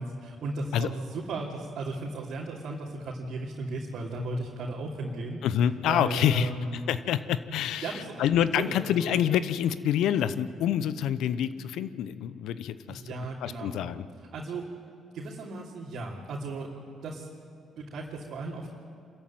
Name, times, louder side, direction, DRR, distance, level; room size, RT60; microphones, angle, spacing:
voice 1, 0.0-5.4 5.8-6.8 7.8-8.2 8.6-9.1 12.9-13.8 14.3-14.6 15.1-16.7 17.0-17.3 17.8-18.7, right 2 dB, 65° right, -5 dB, 3.1 m, -35 dB
voice 2, 5.4-13.0 13.4-14.0, left 10 dB, 75° left, 14 dB, 0.8 m, -27 dB
26.5 x 14.0 x 9.4 m, 2.4 s
hypercardioid pair, 50°, 0 cm